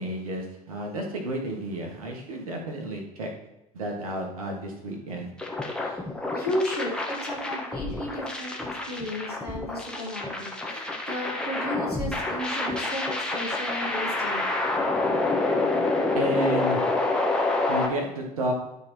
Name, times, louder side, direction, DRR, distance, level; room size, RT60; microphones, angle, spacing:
voice 1, 0.0-3.3 3.7-5.3 16.1-16.8 17.7-18.5, right 1 dB, 70° right, 2 dB, 1.7 m, -31 dB
sound 1, 5.4-17.9, left 2 dB, 5° left, 1.5 m, -28 dB
voice 2, 6.3-14.5, left 1 dB, 90° left, -5 dB, 2.2 m, -34 dB
12.0 x 4.2 x 4.4 m, 0.88 s
figure-of-eight pair, 65°, 19 cm